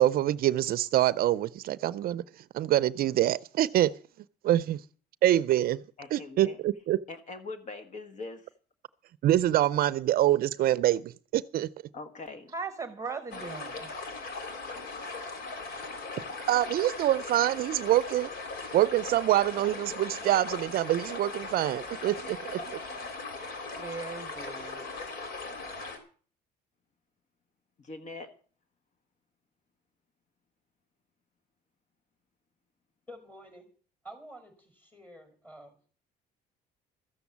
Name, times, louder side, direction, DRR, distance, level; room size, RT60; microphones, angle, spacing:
voice 1, 0.0-2.2 2.5-3.9 4.4-4.8 5.2-5.8 6.1-7.0 9.2-11.7 16.5-18.3 18.7-22.8, right 13 dB, 60° right, 0.5 m, -25 dB
voice 2, 6.0-6.6 7.1-8.5 11.9-12.5 27.8-28.3, left 3 dB, 45° left, 1.6 m, -42 dB
voice 3, 12.5-13.9 23.8-24.9, right 4 dB, 20° right, 1.1 m, -38 dB
sound 1, 13.3-26.0, left 3 dB, 65° left, 3.5 m, -39 dB
voice 4, 33.1-33.7 34.0-35.8, right 1 dB, 10° left, 5.1 m, -49 dB
13.5 x 7.1 x 8.4 m
cardioid pair, 110°, 17 cm